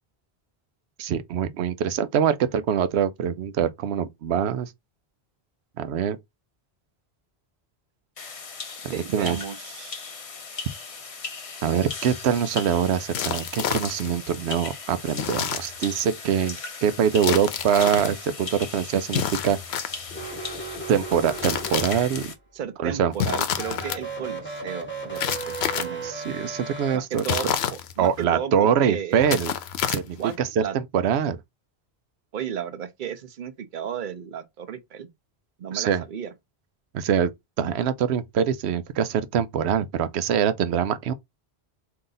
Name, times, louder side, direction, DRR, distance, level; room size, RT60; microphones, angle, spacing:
voice 1, 1.0-4.7 5.8-6.2 8.8-9.4 11.6-19.6 20.9-22.3 22.8-23.1 26.0-27.2 28.0-29.5 29.9-31.4 35.7-36.0 36.9-37.3 37.6-41.1, right 8 dB, 90° right, 0.8 m, -24 dB
sound 1, 8.2-22.4, left 4 dB, 40° left, 0.6 m, -38 dB
voice 2, 8.9-10.0 22.5-26.1 26.9-29.2 30.2-30.3 30.6-30.7 32.3-35.1 35.6-36.3, right 8 dB, 55° right, 0.8 m, -34 dB
sound 2, 13.1-14.2 15.1-16.1 17.2-18.1 19.1-20.3 21.1-22.3 23.1-24.0 25.2-26.1 27.1-28.2 29.1-30.4, left 9 dB, 80° left, 0.8 m, -29 dB
sound 3, 20.1-22.3 23.5-27.0, right 3 dB, 10° left, 0.9 m, -35 dB
3.8 x 2.8 x 3.8 m
omnidirectional pair, 1.1 m